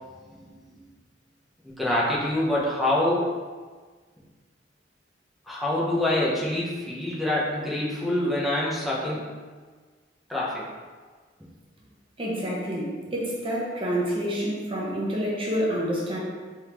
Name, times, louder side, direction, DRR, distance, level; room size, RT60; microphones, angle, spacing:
voice 1, 0.3-0.8 1.6-3.2 5.5-9.2 10.3-10.7, left 1 dB, ahead, -7 dB, 0.8 m, -26 dB
voice 2, 12.2-16.2, equal, 30° right, -5 dB, 0.9 m, -28 dB
3.6 x 3.5 x 3.1 m, 1.5 s
head